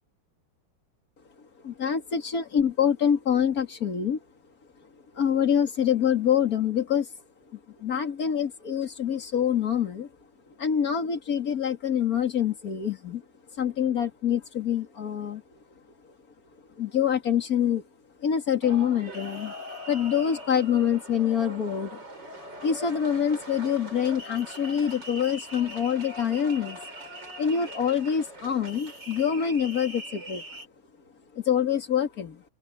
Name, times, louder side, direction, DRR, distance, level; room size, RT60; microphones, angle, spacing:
voice 1, 1.6-4.2 5.1-7.1 7.8-10.1 10.6-13.2 13.6-15.4 16.8-17.8 18.2-19.5 19.9-22.0 22.6-26.8 27.4-30.4 31.3-32.4, left 8 dB, 40° left, 2.7 m, -25 dB
sound 1, 18.6-30.7, equal, 50° right, 7.7 m, -41 dB
open air
omnidirectional pair, 2.4 m